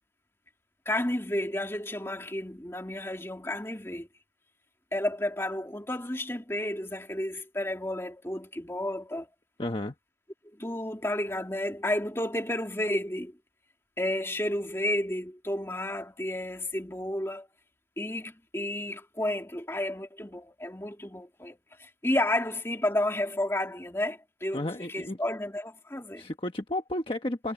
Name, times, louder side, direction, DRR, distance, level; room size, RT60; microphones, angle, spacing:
voice 1, 0.9-4.1 4.9-9.3 10.6-13.3 14.0-17.5 18.0-24.6 24.9-26.3, left 1 dB, 15° left, 2.3 m, -31 dB
voice 2, 9.6-9.9 24.5-25.2 26.2-27.5, left 1 dB, 30° left, 1.3 m, -32 dB
head